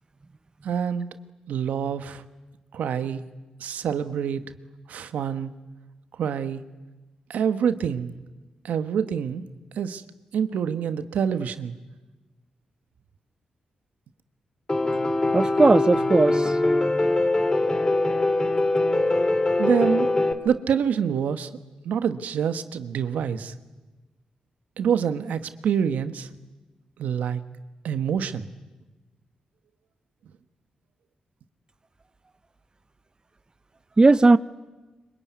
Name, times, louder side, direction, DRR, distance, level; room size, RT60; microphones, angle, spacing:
voice 1, 0.6-1.1 1.5-2.2 2.7-3.2 3.6-4.4 4.9-5.5 6.2-6.6 7.3-8.1 8.6-9.4 9.8-10.0 10.3-11.7 19.6-20.1 20.4-21.5 21.8-23.5 24.8-26.3 27.0-27.4 27.8-28.5, right 7 dB, 85° right, 1.4 m, -26 dB
Piano, 14.7-20.3, left 2 dB, 25° left, 3.1 m, -22 dB
voice 2, 15.3-16.5 34.0-34.4, right 3 dB, 30° right, 0.8 m, -17 dB
25.5 x 24.0 x 9.5 m
supercardioid pair, 50°, 3 cm